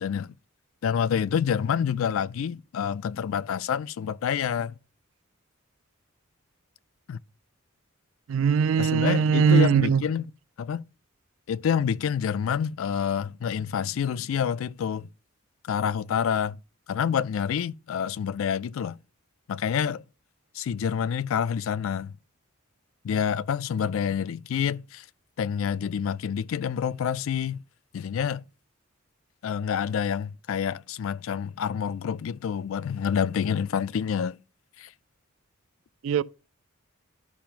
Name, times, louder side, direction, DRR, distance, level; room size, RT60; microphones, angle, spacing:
voice 1, 0.8-4.7 7.1-7.2 8.8-10.3 10.6-10.8 11.5-15.1 15.6-16.6 16.9-19.0 19.5-20.0 20.5-22.1 23.0-25.0 25.4-27.6 27.9-28.4 29.4-34.4 34.8-34.9, left 7 dB, 75° left, 0.3 m, -27 dB
voice 2, 8.3-10.0 36.0-36.2, right 6 dB, 70° right, 0.4 m, -20 dB
12.5 x 5.7 x 2.5 m
head